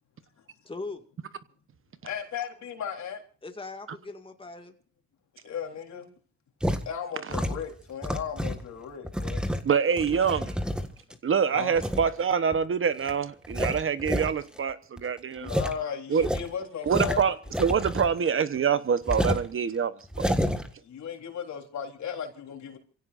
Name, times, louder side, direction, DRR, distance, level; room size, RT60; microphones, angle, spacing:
voice 1, 0.6-1.0 3.4-4.7 9.9-10.7, left 3 dB, 15° left, 2.1 m, -41 dB
voice 2, 2.0-3.2 5.4-6.1 6.9-9.4 11.5-11.8 15.4-17.2 20.8-22.8, left 8 dB, 65° left, 3.8 m, -36 dB
sound 1, 6.6-6.8 7.3-8.6 9.0-11.1 11.8-12.1 12.5-12.6 13.0-13.1 13.4-14.3 14.6-14.7 15.0-15.1 15.4-15.7 16.2-18.3 18.6-18.7 19.1-19.5 20.0-20.7, equal, 5° right, 1.7 m, -29 dB
voice 3, 9.6-10.4 11.2-15.5 16.1-16.3 16.9-17.3 17.6-19.9 20.2-20.3, right 7 dB, 45° right, 1.1 m, -25 dB
27.5 x 16.5 x 2.6 m
cardioid pair, 90°, 30 cm